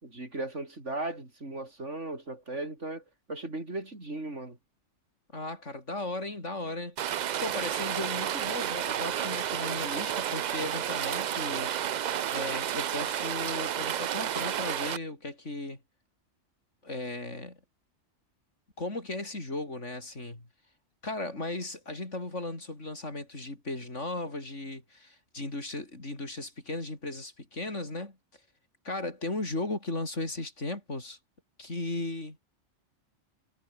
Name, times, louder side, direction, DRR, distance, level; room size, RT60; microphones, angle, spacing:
voice 1, 0.0-3.0 3.3-4.6, right 2 dB, 85° right, 5.6 m, -37 dB
voice 2, 5.3-7.0 7.4-11.7 12.3-15.8 16.8-17.6 18.8-20.5 21.0-28.2 28.8-31.2 31.6-32.4, left 2 dB, 90° left, 5.6 m, -36 dB
Rain, 7.0-15.0, right 10 dB, 55° right, 0.5 m, -31 dB
omnidirectional pair, 1.2 m